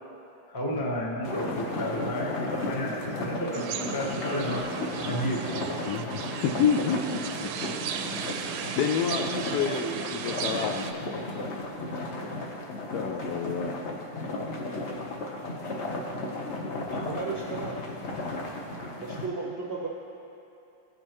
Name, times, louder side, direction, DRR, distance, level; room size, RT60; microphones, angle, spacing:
voice 1, 0.5-4.6 5.0-5.6, equal, 35° left, -4 dB, 0.3 m, -32 dB
sound 1, 1.2-19.3, left 2 dB, 55° left, 0.8 m, -34 dB
sound 2, 3.5-10.9, right 7 dB, 90° right, 1.4 m, -35 dB
voice 2, 5.9-7.5 8.7-11.0 12.9-13.8, left 7 dB, 90° left, 5 dB, 0.8 m, -29 dB
voice 3, 16.9-17.8 19.0-19.9, right 4 dB, 60° right, -4 dB, 0.6 m, -34 dB
16.0 x 5.4 x 3.0 m, 2.7 s
omnidirectional pair, 2.3 m